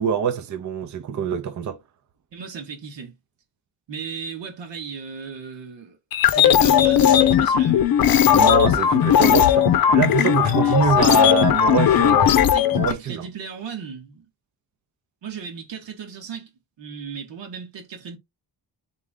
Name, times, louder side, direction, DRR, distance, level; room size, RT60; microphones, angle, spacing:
voice 1, 0.0-1.8 8.3-12.3 12.7-13.2, right 7 dB, 45° right, 0.7 m, -24 dB
voice 2, 2.3-3.2 3.9-6.0 6.3-7.9 10.4-11.4 12.1-12.2 12.5-14.3 15.2-16.5 16.8-18.2, right 6 dB, 90° right, 1.8 m, -36 dB
sound 1, 6.1-12.9, left 9 dB, 55° left, 0.6 m, -17 dB
3.7 x 3.6 x 3.6 m
wide cardioid pair, 130°, 42 cm